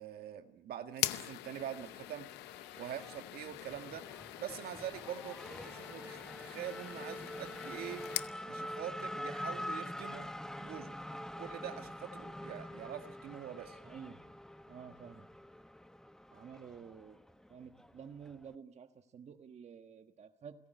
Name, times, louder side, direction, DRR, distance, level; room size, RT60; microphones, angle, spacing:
voice 1, 0.0-2.3 2.8-4.1 4.4-8.1 8.5-10.3 10.6-13.8, right 10 dB, 65° right, 7 dB, 1.8 m, -44 dB
sound 1, 0.9-8.3, left 16 dB, 85° left, 0.8 m, -43 dB
Race car auto racing / Accelerating revving vroom, 1.6-18.5, left 1 dB, 5° left, 0.9 m, -46 dB
voice 2, 13.8-14.2 14.7-15.3 16.3-17.2 17.5-20.6, right 7 dB, 40° right, 8 dB, 1.6 m, -51 dB
29.0 x 17.0 x 9.4 m, 0.85 s
cardioid pair, 110°, 17 cm